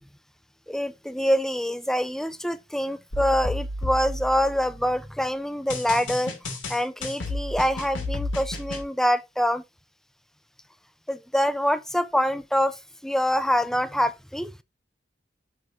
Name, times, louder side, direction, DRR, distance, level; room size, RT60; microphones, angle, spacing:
voice 1, 0.7-6.4 6.7-9.6 11.1-14.5, equal, 5° left, 0.5 m, -25 dB
sound 1, 3.1-5.0 5.7-8.8, left 2 dB, 85° left, 3.0 m, -32 dB
7.9 x 6.7 x 2.7 m
head